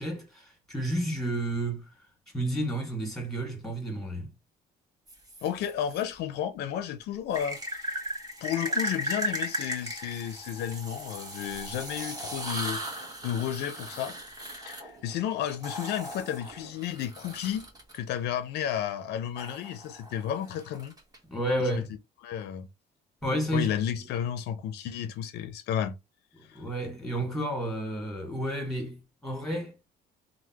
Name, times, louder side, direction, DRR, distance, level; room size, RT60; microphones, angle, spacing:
voice 1, 0.0-1.9 2.3-4.3 21.3-21.9 23.2-23.7 26.3-29.8, right 1 dB, ahead, 1.8 m, -31 dB
sound 1, 5.1-6.0 7.3-18.0 19.4-21.2, equal, 20° right, 1.3 m, -37 dB
voice 2, 5.4-7.9 8.4-12.8 13.2-17.7 17.9-20.9 21.6-21.8 22.2-22.7 23.5-26.0 26.5-26.6, left 10 dB, 80° left, 0.5 m, -32 dB
3.4 x 2.1 x 2.9 m
cardioid pair, 110°, 17 cm